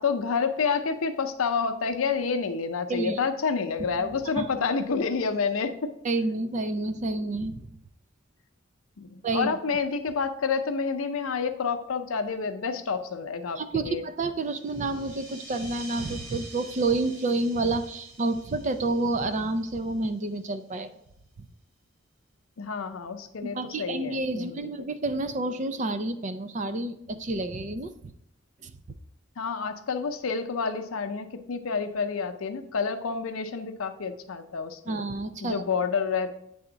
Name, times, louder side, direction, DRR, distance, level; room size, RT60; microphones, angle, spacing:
voice 1, 0.0-5.9 9.0-14.0 22.6-24.9 29.4-35.0 35.4-36.3, left 5 dB, 90° left, 8 dB, 0.6 m, -29 dB
voice 2, 3.8-4.5 6.0-7.6 9.2-9.5 13.6-20.9 23.5-27.9 28.6-28.7 34.9-35.6, right 2 dB, 35° right, 9 dB, 0.4 m, -29 dB
sound 1, 14.4-20.6, right 2 dB, 75° right, 2.1 m, -47 dB
8.7 x 3.5 x 3.9 m, 0.79 s
head